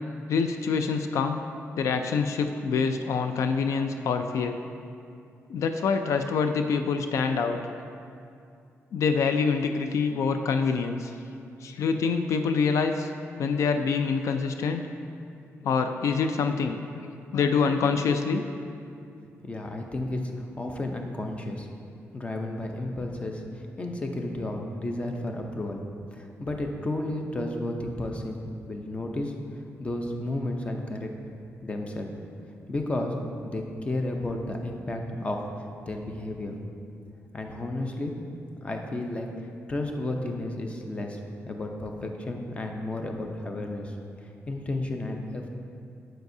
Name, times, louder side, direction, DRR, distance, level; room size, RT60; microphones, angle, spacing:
voice 1, 0.3-1.4 1.8-4.6 5.5-7.6 8.9-11.1 11.6-13.1 13.4-14.8 15.6-17.1 17.3-18.4, left 5 dB, 80° left, 7 dB, 0.4 m, -26 dB
voice 2, 19.4-21.7 22.1-25.8 26.1-29.3 29.8-31.1 31.6-32.1 32.7-33.1 33.4-36.6 37.3-38.1 38.6-39.3 39.7-41.2 41.5-45.5, left 1 dB, 25° left, 3 dB, 0.7 m, -32 dB
9.3 x 7.7 x 2.7 m, 2.5 s
wide cardioid pair, 140°, 5 cm